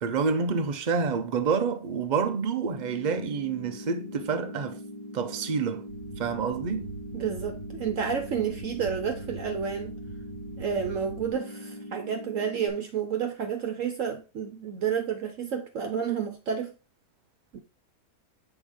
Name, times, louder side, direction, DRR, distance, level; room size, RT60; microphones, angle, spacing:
voice 1, 0.0-4.8 5.1-5.9 6.2-6.9, right 5 dB, 40° right, 0.7 m, -28 dB
sound 1, 2.7-12.7, left 1 dB, 25° left, 1.4 m, -42 dB
sound 2, 5.9-11.3, right 3 dB, 90° left, 2.2 m, -42 dB
voice 2, 7.1-9.9 10.6-16.7 17.5-17.6, right 7 dB, 60° right, 1.1 m, -30 dB
6.9 x 4.6 x 3.5 m
omnidirectional pair, 1.6 m